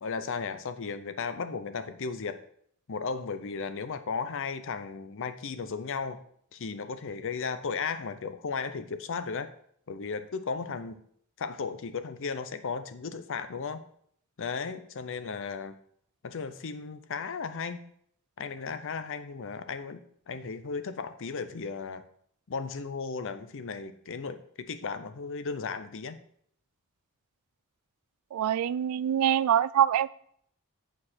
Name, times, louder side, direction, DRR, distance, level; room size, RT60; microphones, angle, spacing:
voice 1, 0.0-2.4 2.9-6.2 6.5-9.5 9.9-11.0 11.4-13.8 14.4-15.7 16.2-17.8 18.4-22.0 22.5-26.2, left 5 dB, 60° left, 11 dB, 0.6 m, -35 dB
voice 2, 28.3-30.1, right 10 dB, 90° right, 18 dB, 0.3 m, -24 dB
8.6 x 4.8 x 4.3 m, 0.65 s
head